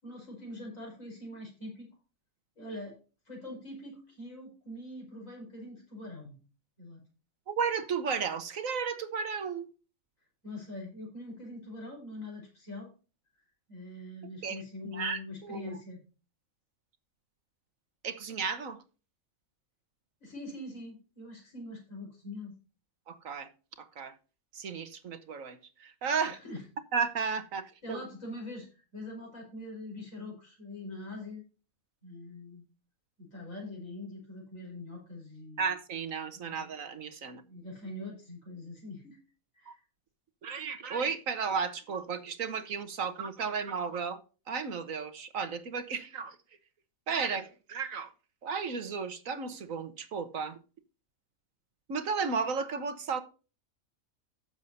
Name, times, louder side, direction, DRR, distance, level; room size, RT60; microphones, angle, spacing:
voice 1, 0.0-1.9 2.6-3.0 3.3-6.3 6.8-7.0 10.4-12.9 13.7-16.0 20.2-22.5 26.3-26.6 27.8-31.4 32.0-32.6 33.2-35.6 36.3-36.7 37.2-39.2 39.5-39.8, left 1 dB, 70° left, 5.4 m, -43 dB
voice 2, 7.5-9.7 14.4-14.6 14.9-15.8 18.0-18.8 23.1-23.5 23.8-24.1 24.5-26.4 26.9-28.0 35.6-37.4 39.7-39.8 40.4-44.2 44.5-46.4 47.1-48.1 48.4-50.6 51.9-53.2, right 5 dB, 70° right, 1.6 m, -34 dB
14.5 x 7.2 x 2.8 m
omnidirectional pair, 1.5 m